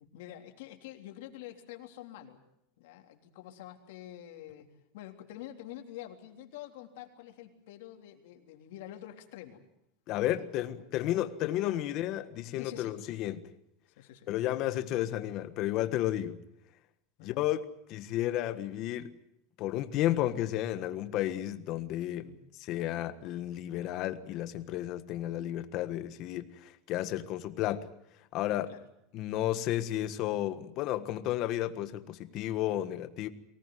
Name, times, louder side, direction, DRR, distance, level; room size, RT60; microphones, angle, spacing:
voice 1, 0.0-2.4 2.8-9.6 10.3-10.8 11.1-11.4 11.7-11.8 12.6-12.9 14.0-14.3 17.2-17.4 22.1-22.5 28.7-28.8, left 12 dB, 75° left, 3.3 m, -47 dB
voice 2, 10.1-13.5 14.3-16.4 17.2-19.1 19.6-22.3 22.6-27.9 28.3-28.7 29.1-33.3, left 13 dB, 40° left, 1.5 m, -32 dB
24.0 x 18.5 x 9.4 m
supercardioid pair, 160°, 0 cm